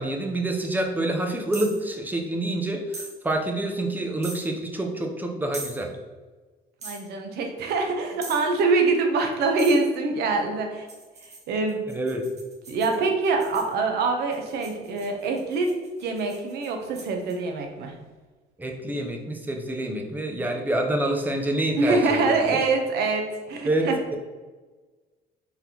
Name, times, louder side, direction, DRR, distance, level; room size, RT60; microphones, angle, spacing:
voice 1, 0.0-5.9 11.9-12.2 18.6-22.2 23.6-24.2, right 1 dB, 10° right, 2 dB, 0.7 m, -27 dB
sound 1, 1.5-1.8 2.9-3.1 4.2-4.5 5.5-5.8 6.8-7.0 8.2-8.5 9.6-9.8 10.9-13.7 14.3-17.3, right 3 dB, 40° right, 1.0 m, -40 dB
voice 2, 6.8-10.9 11.5-11.9 12.7-15.7 16.0-17.9 21.8-24.0, right 3 dB, 75° right, 3 dB, 0.8 m, -24 dB
4.0 x 3.4 x 2.9 m, 1.3 s
cardioid pair, 110°, 17 cm